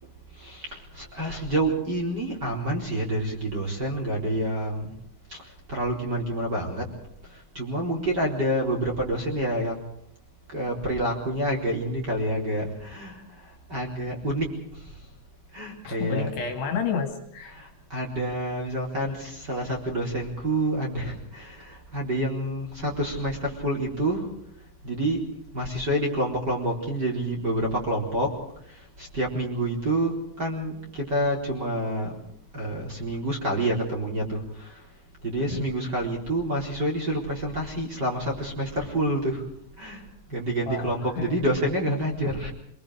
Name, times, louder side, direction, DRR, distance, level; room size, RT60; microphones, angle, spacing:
voice 1, 0.0-4.9 5.3-6.9 7.2-9.8 10.5-15.0 15.5-16.3 17.5-24.3 24.8-25.3 25.5-32.1 32.5-34.9 35.2-39.5 39.8-42.5, right 1 dB, 25° right, -2 dB, 4.2 m, -28 dB
voice 2, 15.8-17.6 35.5-35.7 40.7-41.3, left 6 dB, 65° left, 4 dB, 4.2 m, -30 dB
27.5 x 23.0 x 5.0 m, 0.70 s
omnidirectional pair, 5.5 m